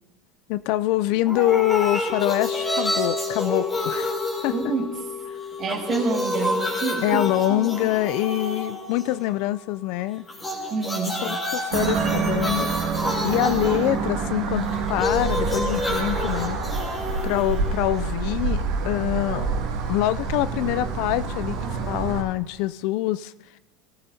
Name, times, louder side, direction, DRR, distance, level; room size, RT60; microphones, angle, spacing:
voice 1, 0.5-4.1 4.4-4.5 7.0-10.2 11.2-12.7 13.2-16.6 17.2-21.6 21.9-23.3, left 15 dB, 65° left, 16 dB, 0.3 m, -25 dB
sound 1, 1.3-5.2 5.5-9.3 10.3-18.3, left 1 dB, 15° left, 3.3 m, -29 dB
sound 2, 2.1-12.4 12.6-12.7, left 7 dB, 40° left, 1.9 m, -36 dB
voice 2, 4.5-4.9 5.6-7.2 7.5-7.9 10.7-11.4, right 5 dB, 40° right, 2 dB, 2.1 m, -28 dB
sound 3, 11.7-22.2, right 5 dB, 70° right, 2.2 m, -27 dB
18.5 x 14.0 x 2.7 m, 1.2 s
supercardioid pair, 115°, 0 cm